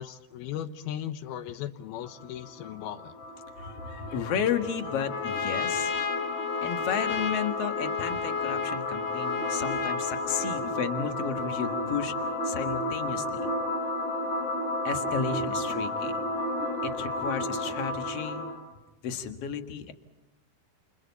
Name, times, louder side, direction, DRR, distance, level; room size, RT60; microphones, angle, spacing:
voice 1, 0.0-3.1, left 11 dB, 90° left, 11 dB, 3.0 m, -37 dB
sound 1, 2.0-18.7, left 1 dB, 20° left, 4.2 m, -33 dB
voice 2, 3.6-5.9 6.6-12.1 12.4-13.5 14.8-16.2 16.8-18.4 19.0-19.9, left 7 dB, 50° left, 6 dB, 2.3 m, -33 dB
Trumpet, 4.8-10.8, left 6 dB, 35° left, 3.3 m, -32 dB
29.5 x 29.0 x 4.2 m, 0.98 s
omnidirectional pair, 4.3 m